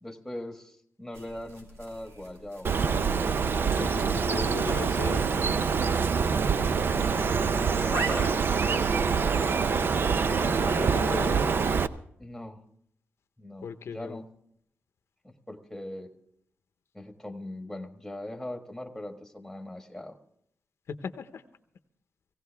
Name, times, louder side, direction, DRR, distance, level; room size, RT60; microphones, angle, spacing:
voice 1, 0.0-2.7 6.8-8.4 12.2-12.6 13.4-14.3 15.2-16.1 16.9-20.2, left 1 dB, 5° left, 5 dB, 1.6 m, -40 dB
sound 1, 1.1-11.1, right 2 dB, 90° right, 2.6 m, -42 dB
Bird, 2.6-11.9, right 5 dB, 50° right, 0.6 m, -25 dB
voice 2, 3.8-5.5 10.4-11.5 13.6-14.2 20.9-21.4, left 6 dB, 75° left, 9 dB, 0.8 m, -37 dB
18.0 x 17.0 x 3.4 m, 0.69 s
wide cardioid pair, 130°, 5 cm